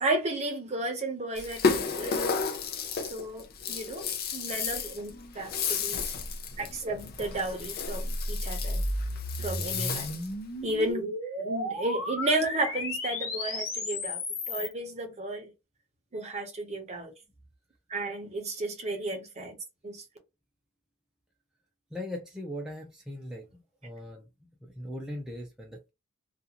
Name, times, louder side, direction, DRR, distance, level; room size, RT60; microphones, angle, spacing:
voice 1, 0.0-2.4 3.1-4.0 4.3-6.1 6.6-8.8 9.4-10.2 10.6-15.5 16.1-17.1 17.9-19.6 19.8-20.0, right 2 dB, 35° right, 0.7 m, -33 dB
Rattle (instrument), 1.3-10.3, left 5 dB, 45° left, 0.5 m, -32 dB
sound 1, 7.9-14.7, left 1 dB, 75° left, 1.0 m, -33 dB
voice 2, 21.9-24.3 24.6-25.9, left 1 dB, 5° right, 0.5 m, -39 dB
2.4 x 2.4 x 2.8 m
head